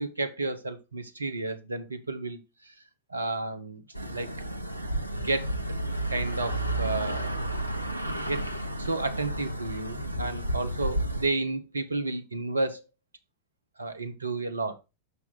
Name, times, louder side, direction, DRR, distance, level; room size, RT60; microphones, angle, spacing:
voice 1, 0.0-2.4 2.7-2.8 3.1-3.8 4.1-4.3 5.1-5.5 6.1-7.4 8.2-8.5 8.8-12.8 13.8-14.8, right 2 dB, 80° right, 0.7 m, -31 dB
sound 1, 3.9-11.3, right 1 dB, 90° left, 0.6 m, -32 dB
5.9 x 5.7 x 3.7 m
figure-of-eight pair, 90°, 0 cm